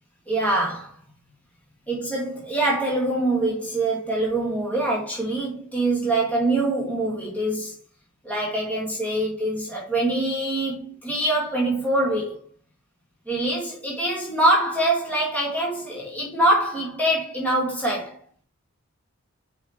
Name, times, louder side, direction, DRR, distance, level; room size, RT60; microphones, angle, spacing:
voice 1, 0.3-0.9 1.9-7.8 8.2-12.5 13.3-18.2, right 1 dB, 5° left, 2.1 m, -24 dB
5.8 x 5.0 x 4.6 m
head